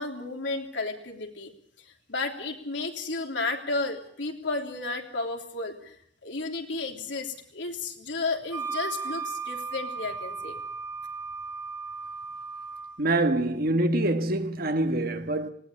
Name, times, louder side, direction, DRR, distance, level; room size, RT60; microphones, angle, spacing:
voice 1, 0.0-1.5 2.1-6.0 6.2-10.6, left 3 dB, 80° left, 3.4 m, -33 dB
Wind instrument woodwind instrument, 8.5-13.0, right 4 dB, 15° right, 1.0 m, -36 dB
voice 2, 13.0-15.5, right 1 dB, 55° right, 1.7 m, -25 dB
20.0 x 18.0 x 8.8 m
head